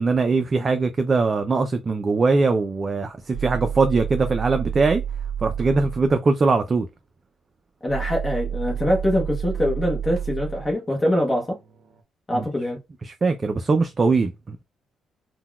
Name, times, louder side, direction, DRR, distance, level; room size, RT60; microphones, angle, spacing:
voice 1, 0.0-5.0 5.4-6.9 12.3-12.4 13.0-14.6, right 3 dB, 35° right, 0.3 m, -21 dB
sound 1, 2.7-6.2 7.9-12.0, right 8 dB, 60° right, 0.8 m, -31 dB
voice 2, 7.8-11.6 12.3-12.8, left 1 dB, 25° left, 0.8 m, -23 dB
3.8 x 2.2 x 2.2 m
cardioid pair, 90°, 0 cm